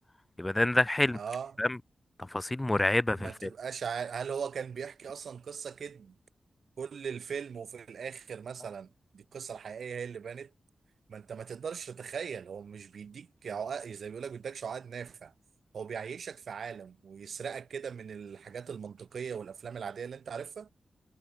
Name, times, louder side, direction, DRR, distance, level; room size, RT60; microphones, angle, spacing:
voice 1, 0.4-1.2 1.6-1.7 2.3-3.5, left 1 dB, 15° left, 2.0 m, -27 dB
voice 2, 1.1-1.6 3.2-6.2 6.8-10.5 11.1-15.3 15.7-20.7, right 6 dB, 75° right, 7.4 m, -39 dB
cardioid pair, 75°, 0 cm